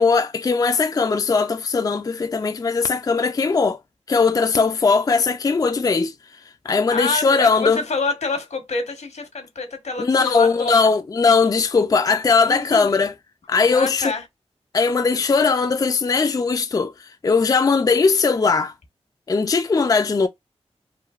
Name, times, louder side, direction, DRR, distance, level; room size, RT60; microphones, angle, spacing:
voice 1, 0.0-3.8 4.1-6.1 6.7-7.8 10.0-13.1 13.5-14.1 14.7-18.7 19.3-20.3, left 4 dB, 35° left, 0.3 m, -19 dB
voice 2, 6.9-10.8 12.4-12.9 13.7-14.2, left 3 dB, 80° left, 1.0 m, -27 dB
3.1 x 2.2 x 2.3 m
cardioid pair, 45°, 12 cm